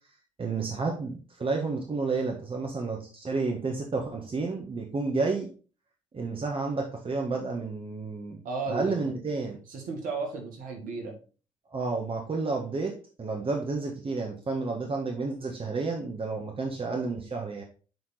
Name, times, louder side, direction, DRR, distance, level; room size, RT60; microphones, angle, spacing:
voice 1, 0.4-5.5 6.1-8.4 8.7-9.6 11.7-17.6, right 3 dB, 40° right, 1 dB, 1.5 m, -31 dB
voice 2, 8.4-9.2 9.7-11.2, right 4 dB, 70° right, 2 dB, 2.1 m, -34 dB
7.6 x 3.7 x 4.2 m, 0.37 s
hypercardioid pair, 45°, 15 cm